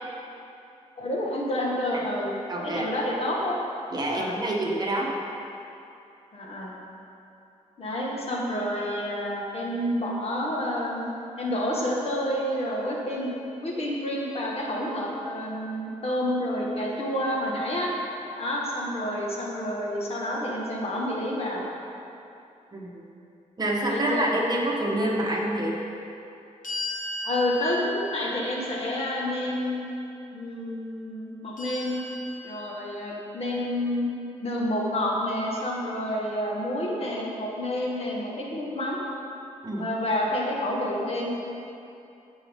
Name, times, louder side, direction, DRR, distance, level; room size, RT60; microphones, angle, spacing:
voice 1, 1.0-2.3 2.6-3.6 4.1-4.4 6.3-6.7 7.8-11.1 11.4-13.3 13.6-17.9 18.3-21.6 23.9-24.3 27.2-30.0 30.3-32.0 32.4-34.0 34.4-39.0 39.7-41.3, left 1 dB, 50° left, -3 dB, 1.7 m, -29 dB
voice 2, 2.5-2.9 3.9-5.1 22.7-23.1 23.6-25.8 39.6-39.9, right 1 dB, 30° right, -2 dB, 1.3 m, -27 dB
sound 1, 26.6-29.8 31.6-33.3, left 1 dB, 80° left, 2.0 m, -37 dB
15.0 x 6.3 x 3.7 m, 2.7 s
wide cardioid pair, 125°, 13 cm